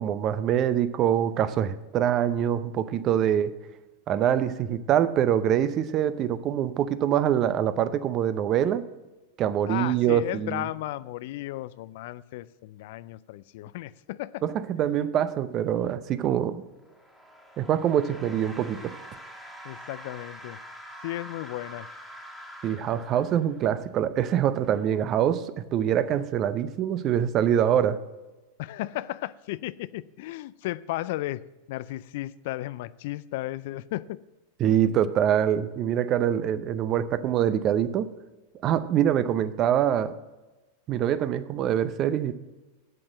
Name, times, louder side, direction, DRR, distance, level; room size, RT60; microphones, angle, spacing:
voice 1, 0.0-3.5 4.1-8.8 9.4-10.7 14.4-16.6 17.6-19.0 22.6-28.0 34.6-38.1 38.6-40.1 40.9-42.3, right 10 dB, 40° right, 13 dB, 0.6 m, -24 dB
voice 2, 9.7-14.4 19.6-20.6 21.0-21.9 28.6-31.4 31.7-34.2, left 16 dB, 55° left, 18 dB, 0.3 m, -34 dB
sound 1, 16.8-23.8, equal, ahead, 1.7 m, -45 dB
7.9 x 7.6 x 7.6 m, 1.1 s
figure-of-eight pair, 95°, 0 cm